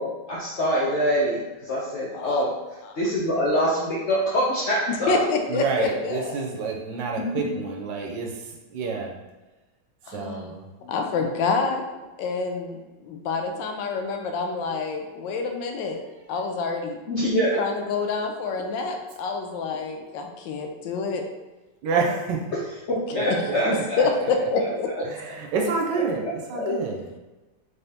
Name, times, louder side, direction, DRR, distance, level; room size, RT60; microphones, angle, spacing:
voice 1, 0.0-2.5 2.9-5.2 7.2-7.5 10.8-10.9 17.1-17.6 22.9-24.0 25.0-25.1 26.6-26.7, equal, 70° left, 0.6 m, -24 dB
voice 2, 2.1-2.5 2.8-3.0 4.9-6.5 10.1-10.5 10.9-11.8 12.2-16.0 16.3-17.0 17.6-21.2 23.3-24.9 26.5-26.8, left 4 dB, 85° left, 1.3 m, -27 dB
voice 3, 5.5-8.4 8.7-9.1 10.1-10.7 21.8-22.4 23.1-24.5 25.1-27.0, right 4 dB, 85° right, 1.3 m, -28 dB
3.8 x 3.4 x 2.8 m
omnidirectional pair, 1.9 m